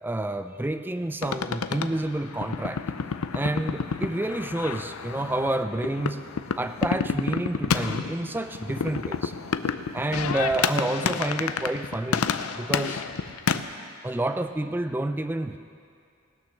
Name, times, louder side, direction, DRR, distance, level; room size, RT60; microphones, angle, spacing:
voice 1, 0.0-2.8 3.3-6.2 6.6-9.3 9.9-12.3 12.5-13.0 14.0-15.6, right 1 dB, 10° right, 9 dB, 0.3 m, -29 dB
sound 1, 1.2-13.6, left 6 dB, 90° left, 0.5 m, -30 dB
19.0 x 6.6 x 6.4 m, 2.4 s
head